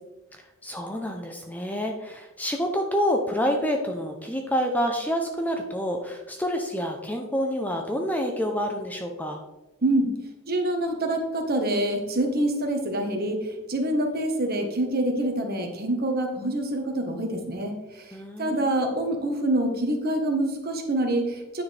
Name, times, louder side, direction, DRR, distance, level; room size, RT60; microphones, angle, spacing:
voice 1, 0.6-9.4 18.1-18.7, equal, 5° left, 3 dB, 0.6 m, -28 dB
voice 2, 10.5-21.6, right 1 dB, 45° right, 4 dB, 1.3 m, -26 dB
9.7 x 6.5 x 3.4 m, 1.0 s
head